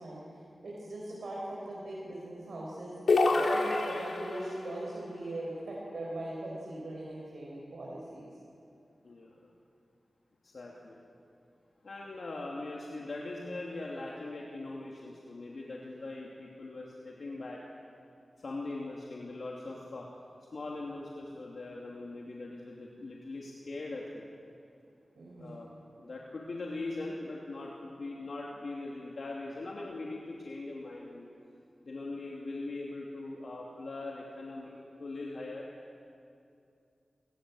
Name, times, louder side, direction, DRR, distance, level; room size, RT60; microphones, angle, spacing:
voice 1, 0.0-2.9 3.4-8.3 25.1-25.6, right 1 dB, 75° right, -5 dB, 6.0 m, -40 dB
sound 1, 3.1-4.6, left 3 dB, 85° left, 3.0 m, -27 dB
voice 2, 9.0-9.5 10.4-11.0 11.8-17.6 18.4-20.1 20.5-24.3 25.4-25.7 26.0-31.3 31.8-35.7, left 2 dB, 65° left, -3 dB, 2.8 m, -41 dB
29.5 x 19.5 x 7.9 m, 2.5 s
wide cardioid pair, 115°, 0 cm